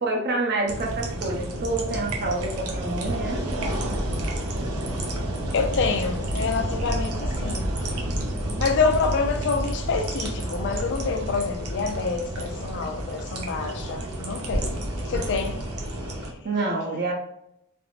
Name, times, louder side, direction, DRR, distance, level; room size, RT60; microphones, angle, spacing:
voice 1, 0.0-3.6 4.6-4.7 11.8-11.9 16.4-17.1, right 2 dB, 50° right, 0.7 m, -28 dB
sound 1, 0.7-16.3, right 1 dB, 85° right, 0.6 m, -30 dB
voice 2, 5.5-7.6 8.6-14.8 15.1-15.6, left 4 dB, 55° left, 0.4 m, -27 dB
3.4 x 2.0 x 2.4 m
head